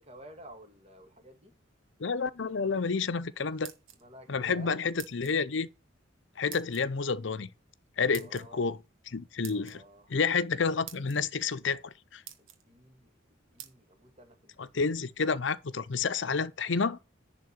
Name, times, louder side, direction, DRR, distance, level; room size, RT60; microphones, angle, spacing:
voice 1, 0.0-1.5 4.0-4.8 8.1-8.7 9.5-10.1 12.4-13.2 13.5-14.7, right 1 dB, 30° right, 1.9 m, -53 dB
voice 2, 2.0-3.7 4.3-5.7 6.4-7.5 8.0-8.8 9.1-9.8 10.1-12.2 14.7-17.0, left 5 dB, 65° left, 0.7 m, -29 dB
sound 1, 3.4-4.3 5.0-5.4 6.5-6.8 8.1-8.5 9.4-9.8 10.5-10.6 10.9-11.2 11.8-11.9 12.2-12.6 13.6-13.7, right 11 dB, 85° right, 1.4 m, -46 dB
10.5 x 3.7 x 6.4 m
head